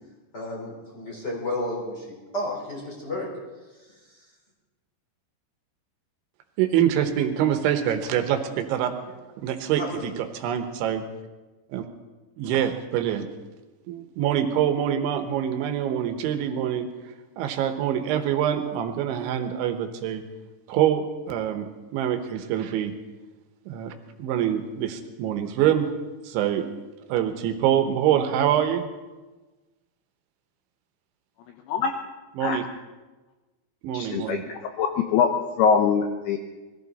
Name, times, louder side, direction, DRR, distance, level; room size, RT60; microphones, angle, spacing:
voice 1, 0.3-3.3 9.7-10.0, left 1 dB, 25° left, -2 dB, 3.9 m, -32 dB
voice 2, 6.6-8.9 9.4-11.0 11.7-11.8 12.4-13.2 13.9-16.9 17.4-20.2 20.7-22.9 23.7-25.9 26.2-26.7 27.1-28.9 32.4-32.6 33.8-34.4, right 10 dB, 80° right, 7 dB, 3.3 m, -25 dB
voice 3, 33.9-35.3 35.6-36.4, left 6 dB, 80° left, 4 dB, 2.4 m, -23 dB
21.0 x 15.0 x 4.1 m, 1.2 s
omnidirectional pair, 5.4 m